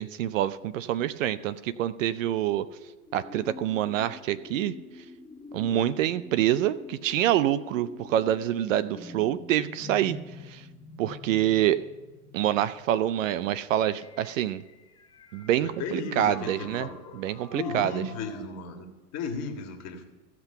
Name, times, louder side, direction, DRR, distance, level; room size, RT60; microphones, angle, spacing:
voice 1, 0.0-2.7 3.1-4.7 5.5-10.2 10.5-10.6 11.0-11.8 12.3-14.6 15.3-16.9 17.1-18.0, right 12 dB, 60° right, 16 dB, 0.6 m, -26 dB
sound 1, 2.2-18.4, left 4 dB, 10° left, 0.9 m, -47 dB
voice 2, 15.6-17.2 17.5-18.9 19.1-20.1, left 4 dB, 35° left, 4 dB, 1.8 m, -35 dB
15.5 x 6.0 x 5.9 m, 1.2 s
hypercardioid pair, 110°, 44 cm